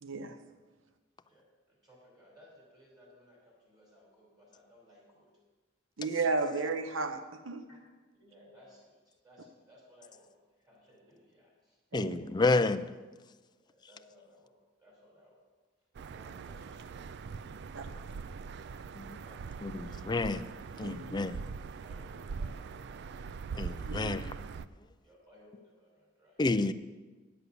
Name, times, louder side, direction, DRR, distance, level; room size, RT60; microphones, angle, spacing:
voice 1, 0.0-0.4 6.0-7.7 11.9-12.2 17.7-17.9 20.8-21.1 23.9-24.2, right 3 dB, 85° right, 0.8 m, -33 dB
voice 2, 1.2-5.3 7.7-7.8 8.1-11.8 13.5-14.5 14.8-15.4 16.1-17.9 19.2-20.2 21.8-23.3 25.0-26.4, left 1 dB, 20° right, 4.6 m, -60 dB
voice 3, 11.9-12.9 18.9-19.2 19.6-20.5 20.8-21.4 23.5-24.3 26.4-26.7, left 3 dB, 20° left, 0.4 m, -30 dB
sound 1, 15.9-24.7, right 5 dB, 60° right, 0.4 m, -42 dB
9.9 x 8.1 x 6.9 m
head